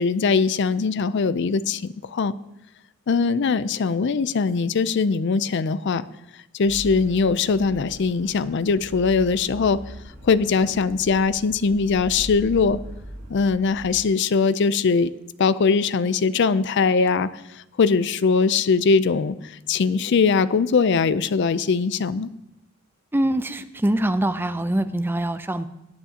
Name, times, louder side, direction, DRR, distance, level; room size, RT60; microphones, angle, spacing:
voice 1, 0.0-2.3 3.1-6.0 6.5-9.8 10.2-12.8 13.3-15.1 15.4-22.3, left 5 dB, 60° left, 16 dB, 0.4 m, -21 dB
sound 1, 6.6-13.9, equal, 55° right, 4.4 m, -40 dB
voice 2, 23.1-25.7, right 1 dB, 10° right, 11 dB, 0.5 m, -24 dB
18.0 x 9.7 x 2.8 m, 0.87 s
head